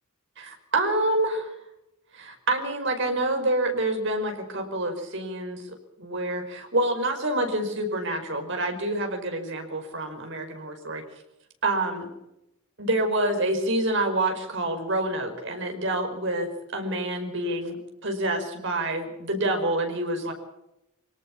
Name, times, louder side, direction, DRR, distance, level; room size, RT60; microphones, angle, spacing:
voice 1, 0.4-1.5 2.1-5.6 6.0-11.0 11.6-12.1 12.8-20.3, right 1 dB, 55° right, 5 dB, 5.2 m, -27 dB
26.0 x 18.5 x 7.3 m, 0.89 s
head